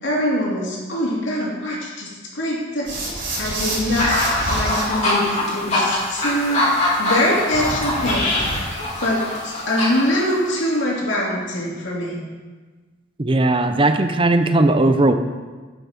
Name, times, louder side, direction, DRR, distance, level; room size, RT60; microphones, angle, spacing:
voice 1, 0.0-2.9 3.4-4.2 4.5-6.7 7.0-8.3 9.0-12.2, left 1 dB, 75° left, -4 dB, 2.7 m, -23 dB
sound 1, 2.8-4.8 7.5-8.9, right 1 dB, 75° right, 3.6 m, -28 dB
sound 2, 4.0-10.7, left 1 dB, 35° left, 3.0 m, -23 dB
voice 2, 13.2-15.1, right 2 dB, 25° right, 9 dB, 0.6 m, -17 dB
9.9 x 7.0 x 5.9 m, 1.4 s
head